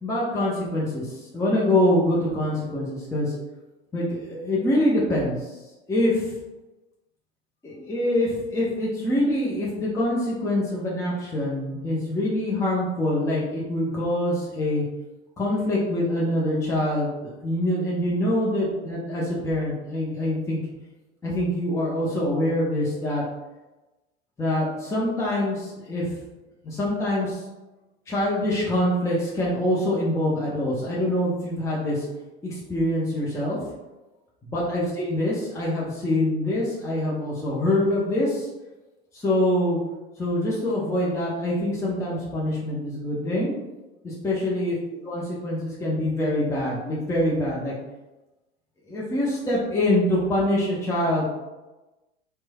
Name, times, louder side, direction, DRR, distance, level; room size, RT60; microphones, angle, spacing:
voice 1, 0.0-3.3 3.9-5.6 5.9-6.4 7.6-14.8 15.4-20.6 21.2-23.2 24.4-26.1 26.6-27.4 28.1-32.1 32.4-33.6 34.4-38.5 39.1-39.8 40.2-43.5 44.0-44.7 45.1-47.7 48.9-51.2, left 1 dB, 10° left, -6 dB, 0.6 m, -25 dB
3.0 x 2.2 x 2.2 m, 1.1 s
hypercardioid pair, 85°, 32 cm